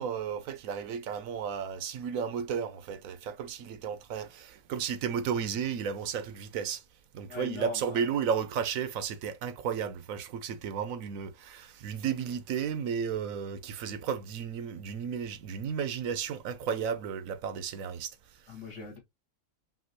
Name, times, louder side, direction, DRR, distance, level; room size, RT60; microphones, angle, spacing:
voice 1, 0.0-6.8 7.1-18.2, right 7 dB, 85° right, 1.1 m, -33 dB
voice 2, 7.3-8.1 18.5-19.0, left 5 dB, 60° left, 1.9 m, -41 dB
5.7 x 2.7 x 2.8 m
omnidirectional pair, 1.4 m